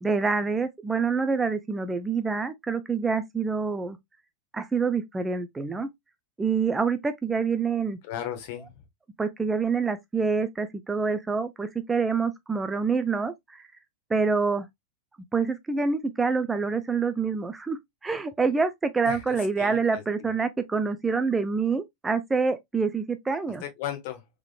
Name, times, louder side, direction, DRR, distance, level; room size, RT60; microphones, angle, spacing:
voice 1, 0.0-4.0 4.5-5.9 6.4-8.0 9.2-13.6 14.1-14.7 15.3-23.6, right 5 dB, 10° right, 0.3 m, -26 dB
voice 2, 8.0-8.8 19.0-20.3 23.6-24.3, left 11 dB, 50° left, 1.1 m, -36 dB
3.6 x 3.5 x 2.2 m
figure-of-eight pair, 90°, 0 cm